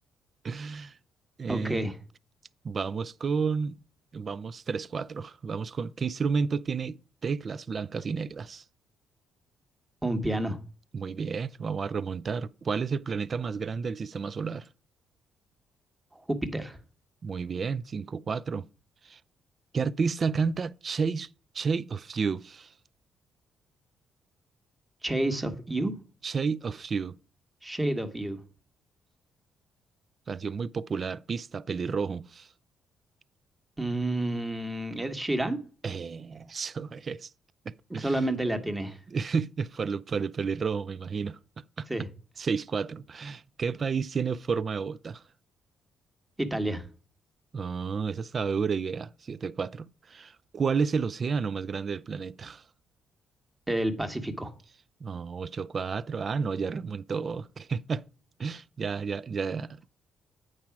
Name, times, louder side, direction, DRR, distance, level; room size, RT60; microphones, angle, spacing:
voice 1, 0.4-1.0 1.4-1.9 2.6-3.8 4.1-8.6 10.9-14.7 17.2-18.7 19.0-19.2 19.7-21.3 21.5-22.7 26.2-27.2 30.3-32.5 35.8-37.3 37.7-38.3 39.1-41.4 41.8-41.9 42.4-45.2 47.5-52.6 55.0-58.0 58.4-59.9, right 5 dB, 45° right, 0.4 m, -31 dB
voice 2, 1.5-1.9 10.0-10.6 16.3-16.8 25.0-25.9 27.6-28.4 33.8-35.6 38.0-39.0 41.9-42.1 46.4-46.8 53.7-54.5, right 1 dB, 15° right, 1.3 m, -29 dB
8.8 x 4.8 x 5.9 m
cardioid pair, 90°, 0 cm